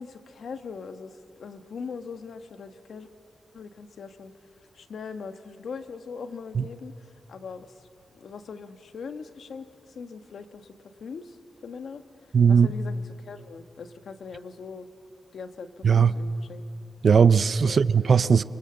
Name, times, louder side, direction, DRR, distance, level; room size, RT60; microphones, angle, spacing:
voice 1, 0.0-3.1 3.5-4.3 4.7-7.7 8.1-9.7 9.9-10.7 11.0-12.0 12.5-14.9 15.3-16.6 17.6-17.8, left 5 dB, 65° left, 1.3 m, -40 dB
voice 2, 12.3-12.7 15.8-16.1 17.0-18.4, right 6 dB, 50° right, 0.6 m, -18 dB
30.0 x 25.0 x 7.9 m
wide cardioid pair, 165°, 0 cm